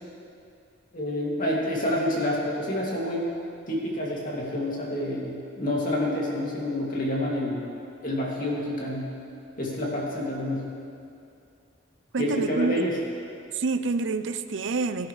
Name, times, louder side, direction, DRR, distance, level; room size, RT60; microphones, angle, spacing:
voice 1, 0.9-3.3 3.7-7.7 8.0-9.1 9.6-10.7 12.2-12.9, left 1 dB, 40° left, -4 dB, 2.7 m, -28 dB
voice 2, 12.1-12.8 13.5-15.1, right 3 dB, 75° right, 11 dB, 0.6 m, -27 dB
22.0 x 10.5 x 3.3 m, 2.5 s
head